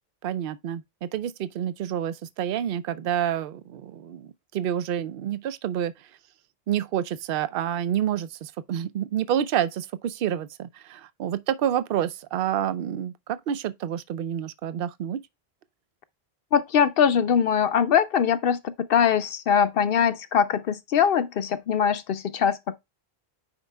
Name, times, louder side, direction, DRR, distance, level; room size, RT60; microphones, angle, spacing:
voice 1, 0.2-5.9 6.7-15.2, right 10 dB, 65° right, 0.7 m, -28 dB
voice 2, 16.5-22.8, left 8 dB, 70° left, 0.7 m, -22 dB
8.8 x 5.2 x 2.2 m
omnidirectional pair, 1.1 m